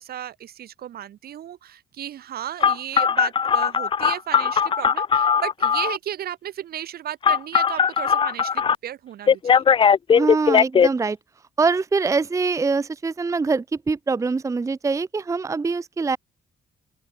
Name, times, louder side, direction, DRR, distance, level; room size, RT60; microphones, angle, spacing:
voice 1, 0.0-9.6, right 11 dB, 70° right, 3.0 m, -34 dB
Telephone, 2.6-6.0 7.2-8.8 9.3-10.9, left 7 dB, 30° left, 0.5 m, -18 dB
voice 2, 10.1-11.2 11.6-16.2, right 4 dB, 20° right, 0.6 m, -23 dB
open air
cardioid pair, 125°, 16 cm